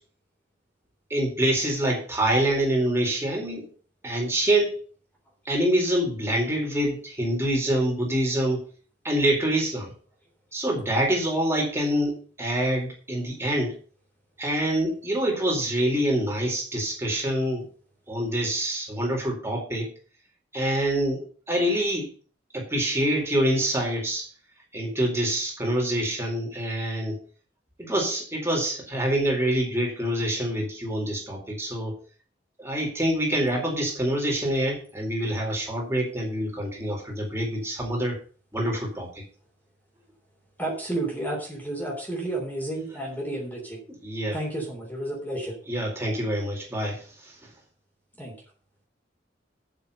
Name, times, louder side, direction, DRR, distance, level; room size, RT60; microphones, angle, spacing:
voice 1, 1.1-3.7 4.0-4.8 5.5-8.6 9.0-9.9 10.5-13.7 14.4-17.7 18.1-19.9 20.5-22.1 22.5-24.3 24.7-27.2 27.8-31.9 32.6-38.2 38.5-39.1 44.0-44.4 45.7-47.0, right 1 dB, 15° right, -1 dB, 4.1 m, -26 dB
voice 2, 40.6-43.8 44.3-45.6 48.2-48.4, right 1 dB, 10° left, -3 dB, 3.4 m, -31 dB
8.1 x 7.1 x 6.6 m, 0.39 s
head